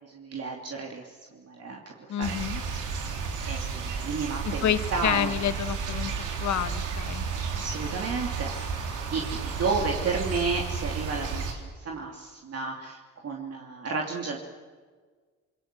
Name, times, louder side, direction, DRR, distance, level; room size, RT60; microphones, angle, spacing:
voice 1, 0.0-2.3 3.4-5.3 7.5-14.4, right 4 dB, 55° right, 0 dB, 3.0 m, -32 dB
voice 2, 2.1-2.6 4.4-7.2, left 9 dB, 70° left, 10 dB, 1.6 m, -29 dB
sound 1, 2.2-11.5, right 5 dB, 85° right, 3.8 m, -32 dB
27.5 x 23.0 x 7.7 m, 1.5 s
cardioid pair, 90°, 30 cm